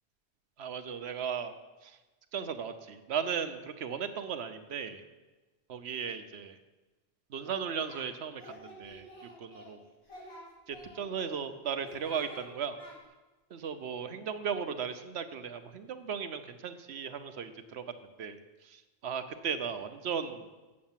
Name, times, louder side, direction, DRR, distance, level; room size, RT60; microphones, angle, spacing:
voice 1, 0.6-1.5 1.8-1.9 2.3-5.0 5.7-6.6 7.3-9.0 9.4-9.8 10.7-12.8 13.5-18.4 18.6-20.5, right 7 dB, 75° right, 9 dB, 1.0 m, -36 dB
Singing, 7.3-8.1 8.4-9.7 10.0-11.3 11.7-12.4 12.8-12.9, equal, 65° left, 4.4 m, -50 dB
8.6 x 6.9 x 7.3 m, 1.2 s
omnidirectional pair, 1.1 m